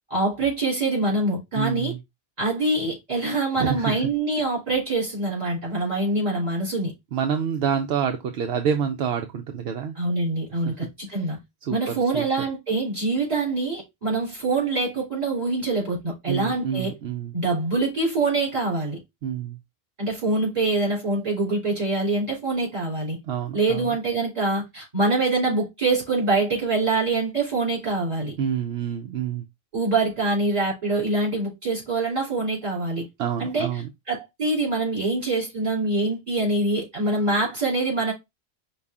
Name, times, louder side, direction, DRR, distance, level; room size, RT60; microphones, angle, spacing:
voice 1, 0.1-1.9 2.4-6.9 10.0-11.4 11.7-16.9 17.3-19.0 20.0-23.2 23.5-28.3 29.7-33.1 33.4-33.7 34.1-38.1, right 2 dB, 35° right, 3.3 m, -24 dB
voice 2, 1.5-2.0 3.6-4.1 4.4-4.5 7.1-10.0 10.5-11.2 11.6-12.3 16.3-17.3 19.2-19.6 23.2-24.0 28.4-29.4 33.2-33.9, right 8 dB, 75° right, 0.8 m, -28 dB
5.4 x 2.3 x 3.5 m
omnidirectional pair, 1.1 m